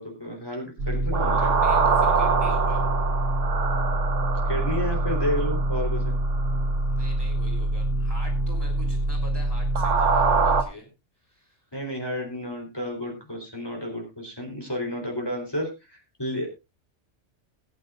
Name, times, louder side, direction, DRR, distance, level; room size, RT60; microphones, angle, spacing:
voice 1, 0.0-1.5 4.4-6.2 11.7-16.5, equal, 20° left, 0 dB, 3.7 m, -31 dB
voice 2, 0.8-2.9 6.9-10.9 11.2-11.7, equal, 20° right, 0 dB, 3.3 m, -44 dB
sound 1, 0.8-10.6, right 3 dB, 80° right, 1.5 m, -23 dB
20.0 x 9.6 x 2.5 m, 0.25 s
omnidirectional pair, 1.2 m